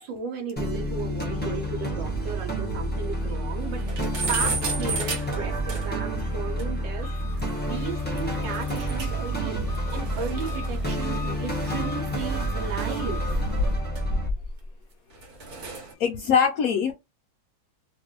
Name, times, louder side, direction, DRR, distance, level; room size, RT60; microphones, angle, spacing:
voice 1, 0.0-3.9 4.3-13.3, right 5 dB, 85° right, 1.5 m, -35 dB
sound 1, 0.6-14.3, equal, 10° left, 0.7 m, -29 dB
sound 2, 1.8-1.9 2.2-2.3 2.7-2.8 3.1-3.2 3.5-6.1 6.6-6.7 8.5-9.3 9.6-12.2 13.0-14.7 15.1-15.9, right 1 dB, 60° right, 1.3 m, -32 dB
Engine, 7.0-13.7, left 1 dB, 35° left, 0.3 m, -39 dB
voice 2, 16.0-16.9, left 7 dB, 75° left, 0.8 m, -22 dB
2.9 x 2.6 x 2.8 m
omnidirectional pair, 2.0 m